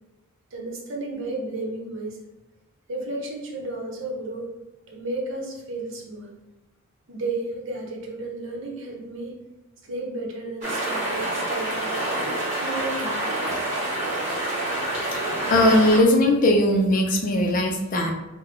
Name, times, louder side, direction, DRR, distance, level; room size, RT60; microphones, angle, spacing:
voice 1, 0.5-2.2 2.9-4.5 4.9-6.3 7.1-9.4 9.8-12.0 12.6-13.4, right 2 dB, 65° right, 0 dB, 0.7 m, -33 dB
sound 1, 10.6-16.0, right 1 dB, 35° right, 1.0 m, -27 dB
voice 2, 15.1-18.1, left 1 dB, 40° left, 2 dB, 0.5 m, -19 dB
3.4 x 2.1 x 3.6 m, 1.0 s
head